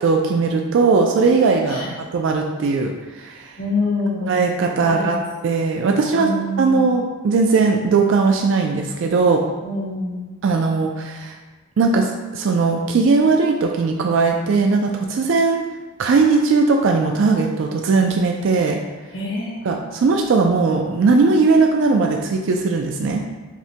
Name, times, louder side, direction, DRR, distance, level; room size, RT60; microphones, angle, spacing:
voice 1, 0.0-3.5 4.2-5.2 5.4-6.3 6.6-9.4 10.4-11.3 11.8-15.6 16.0-18.8 19.7-23.2, right 4 dB, 60° right, 2 dB, 0.3 m, -18 dB
voice 2, 3.6-4.2 4.8-5.2 6.0-6.9 9.6-10.2 19.1-19.6, left 2 dB, 75° left, -6 dB, 1.2 m, -25 dB
5.8 x 2.1 x 2.8 m, 1.3 s
head